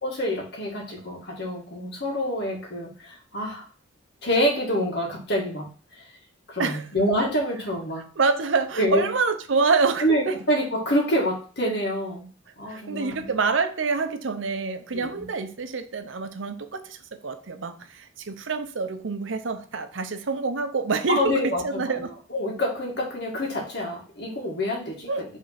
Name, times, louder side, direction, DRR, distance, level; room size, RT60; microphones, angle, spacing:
voice 1, 0.0-3.7 4.2-6.1 6.5-8.1 8.8-9.1 10.0-12.3 12.6-13.3 14.9-15.3 21.1-25.4, equal, 60° left, 2.1 m, -27 dB
voice 2, 8.2-10.4 12.7-22.1 25.1-25.3, right 4 dB, 90° right, 0.7 m, -26 dB
5.4 x 3.7 x 5.8 m
head